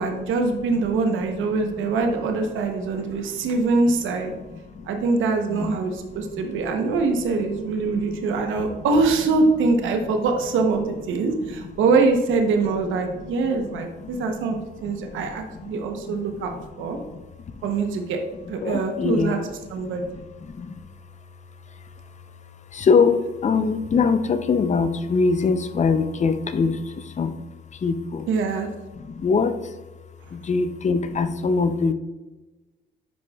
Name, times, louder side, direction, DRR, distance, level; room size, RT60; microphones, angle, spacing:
voice 1, 0.0-4.3 4.9-16.5 16.8-17.0 17.6-18.2 18.5-19.4 19.7-20.1 28.3-28.7, right 3 dB, 80° right, 4 dB, 0.9 m, -23 dB
voice 2, 0.7-1.9 2.4-3.6 4.2-5.1 5.5-7.0 7.3-8.9 10.1-10.2 11.3-11.7 12.7-17.2 17.5-17.7 18.5-19.4 19.7-20.8 21.7-27.4 27.7-28.3 28.9-29.8 30.3-31.9, left 5 dB, 35° left, 11 dB, 0.6 m, -26 dB
10.5 x 5.2 x 2.3 m, 1.1 s
cardioid pair, 90°, 20 cm